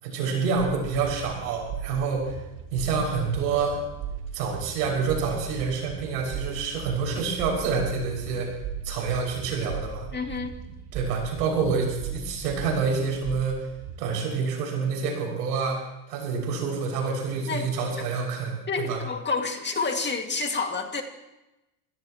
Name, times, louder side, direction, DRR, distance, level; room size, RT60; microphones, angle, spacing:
voice 1, 0.0-2.4 2.7-3.8 4.3-8.5 8.8-10.1 10.9-13.7 14.0-15.8 16.1-19.0, right 5 dB, 85° right, 0 dB, 6.5 m, -27 dB
sound 1, 0.6-14.1, right 7 dB, 55° right, 2.0 m, -38 dB
voice 2, 10.1-10.6 17.5-17.7 18.7-21.0, left 4 dB, 20° left, 4 dB, 2.3 m, -29 dB
25.0 x 17.0 x 3.1 m, 0.97 s
supercardioid pair, 100°, 47 cm